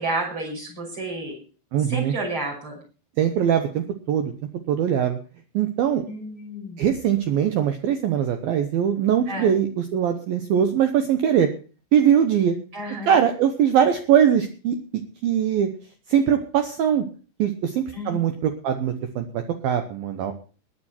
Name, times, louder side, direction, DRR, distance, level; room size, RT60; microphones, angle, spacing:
voice 1, 0.0-1.4 1.9-2.8 6.1-6.8 9.3-9.6 12.7-13.2 17.9-18.2, right 2 dB, 25° right, 0 dB, 6.5 m, -31 dB
voice 2, 1.7-2.1 3.2-4.3 4.7-5.2 5.5-6.0 6.8-11.5 11.9-12.5 13.1-15.7 16.1-17.0 17.4-20.3, right 9 dB, 70° right, 7 dB, 2.3 m, -21 dB
20.5 x 9.5 x 4.4 m, 0.38 s
omnidirectional pair, 5.4 m